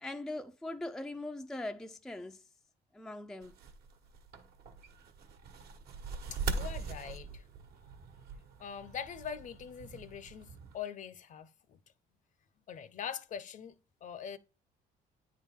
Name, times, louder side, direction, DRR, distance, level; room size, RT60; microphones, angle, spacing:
voice 1, 0.0-2.4 2.9-3.5, left 2 dB, 5° left, 0.4 m, -41 dB
sound 1, 3.4-10.8, right 4 dB, 70° right, 1.3 m, -42 dB
voice 2, 6.3-7.4 8.6-10.5 10.7-11.8 12.7-14.4, left 8 dB, 50° left, 0.7 m, -43 dB
9.3 x 3.7 x 3.6 m
cardioid pair, 110°, 17 cm